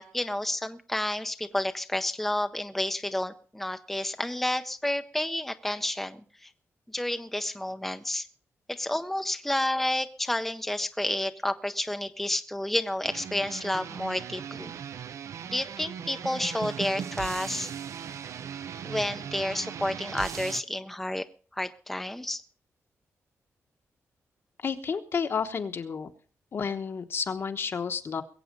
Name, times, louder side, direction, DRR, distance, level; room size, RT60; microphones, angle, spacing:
voice 1, 0.0-6.5 6.9-8.3 8.7-14.7 15.5-17.7 18.9-21.3 21.5-22.4, left 1 dB, 5° left, 8 dB, 0.6 m, -30 dB
sound 1, 13.0-20.6, right 8 dB, 70° right, 0.6 m, -38 dB
voice 2, 24.6-26.1 26.5-28.2, left 6 dB, 45° left, 8 dB, 1.1 m, -31 dB
21.5 x 8.3 x 5.2 m, 0.42 s
wide cardioid pair, 155°, 5 cm